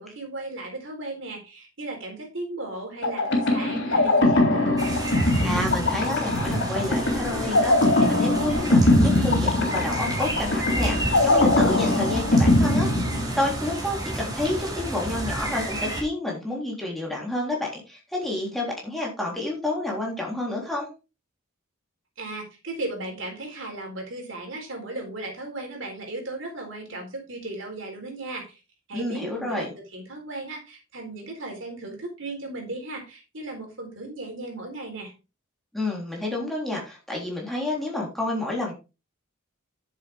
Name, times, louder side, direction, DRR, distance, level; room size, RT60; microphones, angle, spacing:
voice 1, 0.0-4.8 22.2-28.6 28.9-35.1, right 2 dB, 65° right, 2 dB, 4.0 m, -36 dB
sound 1, 3.0-13.7, left 2 dB, 55° left, 3.5 m, -22 dB
sound 2, 4.8-16.0, right 1 dB, 20° right, 3.2 m, -32 dB
voice 2, 5.4-12.9 13.4-20.9 28.9-29.7 35.7-38.7, left 1 dB, ahead, -3 dB, 3.6 m, -29 dB
10.5 x 7.4 x 3.5 m, 0.29 s
head